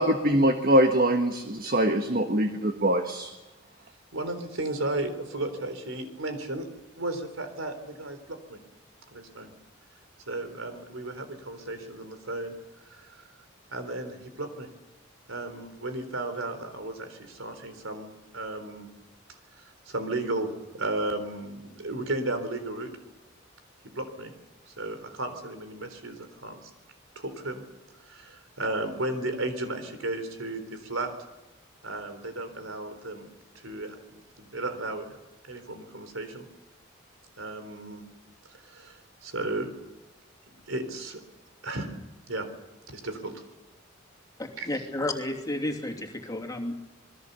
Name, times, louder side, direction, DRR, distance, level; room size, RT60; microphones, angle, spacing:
voice 1, 0.0-3.3, right 1 dB, 45° right, 6 dB, 1.5 m, -23 dB
voice 2, 4.1-6.7 7.0-8.6 9.1-9.5 10.3-12.5 12.8-13.2 13.7-14.7 15.3-18.9 19.5-22.9 23.8-24.3 24.7-26.7 27.2-27.6 28.0-31.1 31.8-33.3 33.6-35.2 35.4-36.4 37.4-38.0 38.5-39.7 40.7-41.2 41.6-41.9 42.3-42.5 42.9-43.4 44.6-44.8, right 2 dB, 80° right, 8 dB, 3.9 m, -34 dB
voice 3, 44.4-46.7, left 1 dB, 20° left, 2 dB, 2.9 m, -32 dB
27.5 x 21.0 x 6.9 m, 1.1 s
head